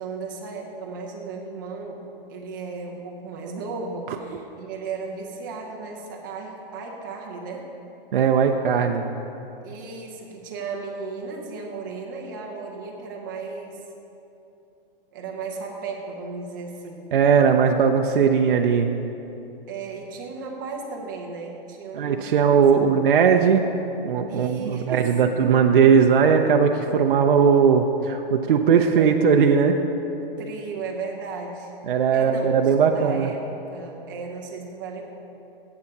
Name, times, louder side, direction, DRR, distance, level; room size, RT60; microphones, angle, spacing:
voice 1, 0.0-2.0 2.3-7.7 9.6-13.8 15.1-17.1 19.7-23.0 24.3-25.4 28.7-29.1 30.2-31.7 32.1-32.5 32.8-35.0, right 4 dB, 20° right, -1 dB, 0.7 m, -35 dB
voice 2, 8.1-9.1 17.1-18.9 21.9-23.6 24.0-29.8 31.9-33.3, right 6 dB, 60° right, 3 dB, 0.6 m, -18 dB
8.4 x 7.1 x 6.5 m, 2.9 s
hypercardioid pair, 180°, 29 cm